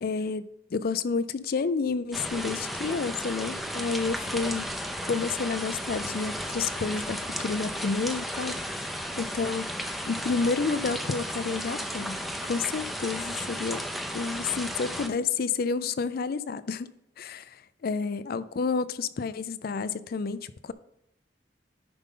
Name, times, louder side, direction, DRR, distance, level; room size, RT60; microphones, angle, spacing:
voice 1, 0.0-4.7 5.1-8.6 9.2-9.7 10.1-12.2 12.4-13.8 14.1-16.9 17.2-20.7, left 4 dB, 55° left, 0.4 m, -30 dB
sound 1, 2.1-15.1, equal, ahead, 0.6 m, -34 dB
10.0 x 5.4 x 3.7 m
head